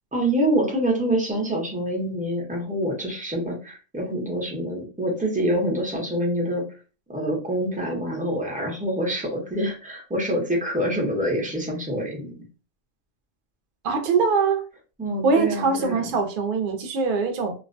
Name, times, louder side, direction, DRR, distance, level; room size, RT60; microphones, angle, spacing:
voice 1, 0.1-6.6 7.1-12.3 15.0-16.1, right 1 dB, 10° right, 0.4 m, -26 dB
voice 2, 13.8-14.6 15.2-17.5, right 4 dB, 60° right, 0.5 m, -22 dB
2.4 x 2.1 x 2.5 m
omnidirectional pair, 1.4 m